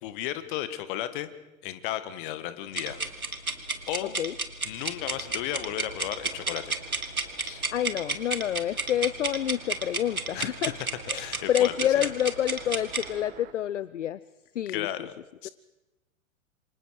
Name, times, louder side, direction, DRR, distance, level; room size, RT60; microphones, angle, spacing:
voice 1, 0.0-1.3 1.6-3.0 3.9-4.2 4.6-6.8 7.4-7.6 10.3-10.9 11.1-12.1 14.7-15.1 15.4-15.5, left 13 dB, 35° left, 13 dB, 1.6 m, -34 dB
sound 1, 2.7-13.1, right 3 dB, 85° right, 1.7 m, -32 dB
sound 2, 5.0-13.5, right 11 dB, 25° right, 1.2 m, -49 dB
voice 2, 7.7-10.7 11.1-11.2 11.5-14.2 14.6-14.9, left 11 dB, 60° left, 19 dB, 0.6 m, -28 dB
27.5 x 25.0 x 4.7 m, 1.0 s
figure-of-eight pair, 105°, 42 cm